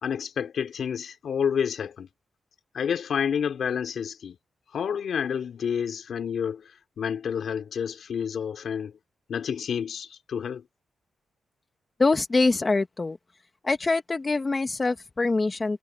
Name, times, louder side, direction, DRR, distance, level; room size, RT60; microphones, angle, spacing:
voice 1, 0.0-2.1 2.7-4.4 4.7-6.7 7.0-9.0 9.3-10.7, left 7 dB, 65° left, 3.7 m, -29 dB
voice 2, 12.0-13.2 13.6-15.8, left 3 dB, 25° left, 1.5 m, -24 dB
wide cardioid pair, 135°, 0 cm